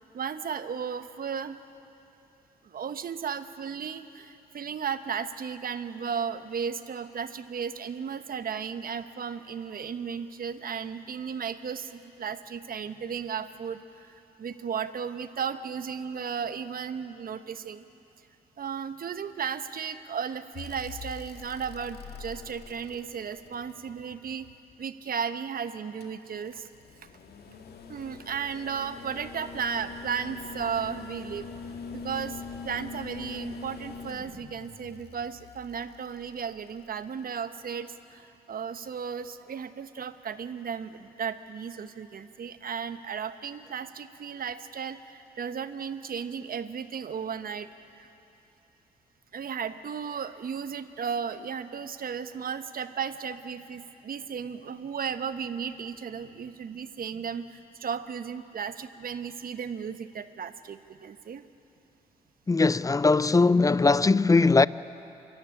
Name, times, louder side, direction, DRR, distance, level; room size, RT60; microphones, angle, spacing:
voice 1, 0.1-1.6 2.6-17.8 18.6-24.5 24.8-26.7 27.9-31.5 31.9-48.1 49.3-61.4, right 7 dB, 55° right, 1.1 m, -35 dB
sound 1, 20.5-24.7 26.0-37.2 38.7-38.8, left 5 dB, 65° left, 1.8 m, -43 dB
voice 2, 62.5-64.7, left 3 dB, 20° left, 0.5 m, -20 dB
25.0 x 14.0 x 10.0 m
supercardioid pair, 60°, 18 cm